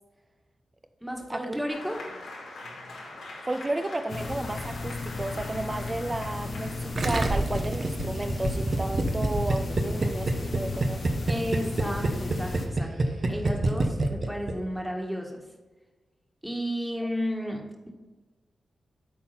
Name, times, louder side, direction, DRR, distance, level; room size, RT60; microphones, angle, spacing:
voice 1, 1.0-2.0 11.3-12.9 13.2-15.4 16.4-18.0, equal, 5° right, 1 dB, 1.6 m, -33 dB
Applause, 1.7-8.9, left 2 dB, 85° left, 2.4 m, -44 dB
voice 2, 3.5-11.0 17.0-17.1, right 2 dB, 30° right, 9 dB, 0.6 m, -33 dB
sound 1, 4.1-12.7, left 3 dB, 60° left, 1.1 m, -34 dB
Gurgling, 7.0-14.8, right 2 dB, 50° right, 1.0 m, -27 dB
8.4 x 4.3 x 5.9 m, 1.2 s
cardioid pair, 55°, 0 cm